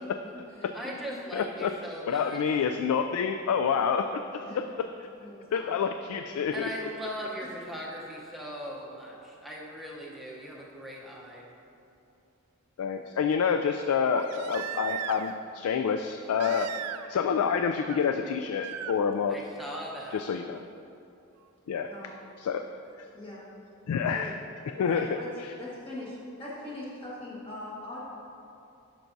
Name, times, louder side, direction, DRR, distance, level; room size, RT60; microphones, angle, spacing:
voice 1, 0.0-1.1 4.4-4.6 5.2-5.6 7.0-7.3 21.9-22.2 23.1-23.4 24.1-24.3 24.8-25.3 25.6-28.0, left 2 dB, 25° left, -7 dB, 1.4 m, -41 dB
voice 2, 0.7-2.4 6.5-11.5 19.3-20.2, equal, ahead, -4 dB, 0.8 m, -39 dB
voice 3, 1.3-1.7 2.1-4.2 5.5-6.7 12.8-16.7 17.1-19.4 20.1-20.6 21.7-21.9 22.4-22.6 23.9-24.3 24.8-25.1 25.4-25.5, left 6 dB, 80° left, 7 dB, 0.3 m, -28 dB
Crying sobbing, 11.4-11.5 14.1-15.4 16.4-17.2 17.5-18.0 18.6-18.9 20.6-20.7, right 10 dB, 90° right, 0.3 m, -38 dB
11.5 x 6.0 x 2.7 m, 2.6 s
head